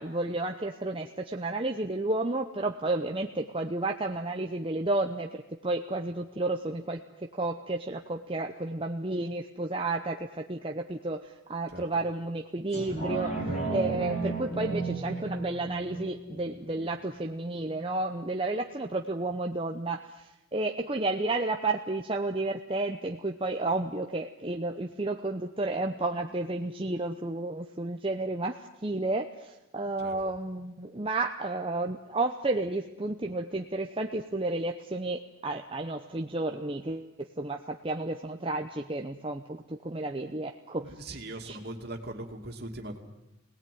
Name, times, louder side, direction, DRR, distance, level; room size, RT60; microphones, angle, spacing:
voice 1, 0.0-13.4 13.7-37.1 37.4-40.9 41.5-41.6, right 2 dB, 25° right, 3 dB, 0.8 m, -32 dB
sound 1, 12.7-17.8 18.2-18.3, right 3 dB, 30° left, 4.9 m, -34 dB
voice 2, 40.8-43.0, right 1 dB, 50° right, 3 dB, 2.7 m, -40 dB
25.5 x 18.5 x 9.5 m, 0.95 s
head